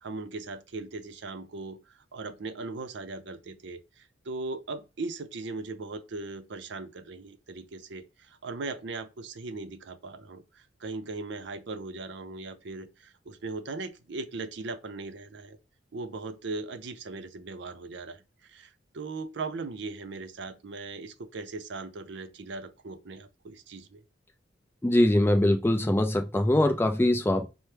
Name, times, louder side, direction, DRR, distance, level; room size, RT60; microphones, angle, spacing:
voice 1, 0.0-15.6 15.9-24.0, right 3 dB, 60° right, 0.5 m, -39 dB
voice 2, 24.8-27.5, left 1 dB, 10° left, 0.4 m, -23 dB
5.7 x 2.1 x 3.3 m
head